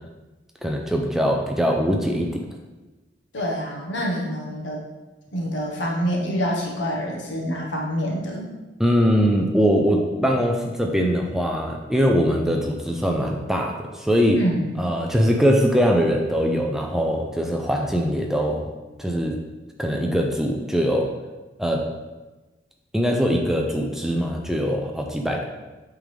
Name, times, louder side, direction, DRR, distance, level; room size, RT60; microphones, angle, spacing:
voice 1, 0.6-2.4 8.8-14.4 14.8-18.7 19.0-19.4 19.8-21.1 21.6-21.9 22.9-25.4, equal, ahead, 1 dB, 0.4 m, -22 dB
voice 2, 3.3-4.8 5.3-8.5 14.3-14.8, equal, 80° left, -2 dB, 1.2 m, -26 dB
8.2 x 3.7 x 3.4 m, 1.2 s
head